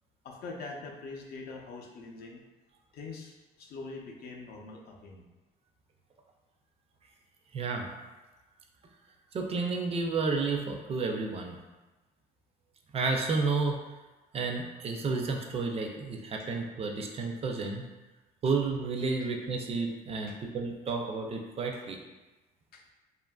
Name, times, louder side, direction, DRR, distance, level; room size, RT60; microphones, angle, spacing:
voice 1, 0.2-2.4 2.9-5.2 20.3-20.4 21.7-21.8 22.7-22.8, left 3 dB, 65° left, 0 dB, 0.5 m, -43 dB
voice 2, 7.5-7.9 9.3-11.6 12.9-13.8 14.3-17.8 18.4-22.0, right 4 dB, 35° right, 2 dB, 0.3 m, -31 dB
2.8 x 2.4 x 2.2 m, 1.1 s
cardioid pair, 110°, 17 cm